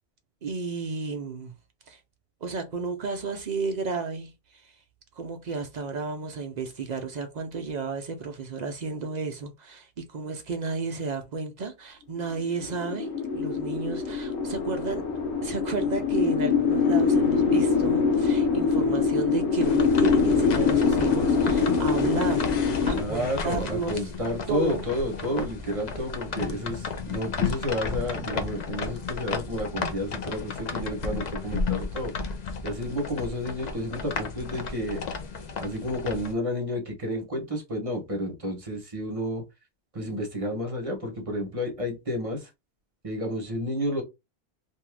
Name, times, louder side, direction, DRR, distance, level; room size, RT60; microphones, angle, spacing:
voice 1, 0.4-1.5 1.9-2.0 2.4-4.7 5.2-13.1 13.3-15.1 15.4-22.4 22.9-24.0 24.5-24.8, right 4 dB, 55° right, 0.5 m, -32 dB
sound 1, 12.4-23.0, left 5 dB, 90° left, 1.0 m, -24 dB
sound 2, 19.6-36.3, left 4 dB, 50° left, 0.5 m, -33 dB
voice 2, 22.9-32.1 32.6-35.0 35.6-39.4 39.9-42.5 43.0-44.0, equal, 35° right, 0.9 m, -31 dB
2.7 x 2.4 x 3.2 m
omnidirectional pair, 1.1 m